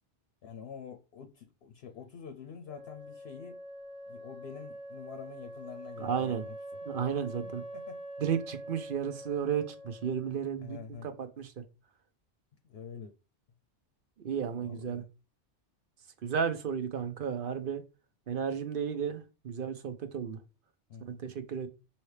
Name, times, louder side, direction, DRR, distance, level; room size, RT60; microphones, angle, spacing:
voice 1, 0.4-3.6 4.1-6.6 7.7-8.0 10.6-11.1 12.6-13.1 14.6-15.1 20.9-21.2, left 7 dB, 65° left, 0.8 m, -46 dB
Wind instrument woodwind instrument, 2.7-10.4, right 1 dB, 5° left, 0.7 m, -45 dB
voice 2, 6.0-6.4 6.9-7.6 8.2-11.6 14.2-15.0 16.2-17.8 18.3-20.4 21.1-21.7, right 7 dB, 55° right, 0.7 m, -33 dB
5.6 x 2.8 x 3.2 m
omnidirectional pair, 1.2 m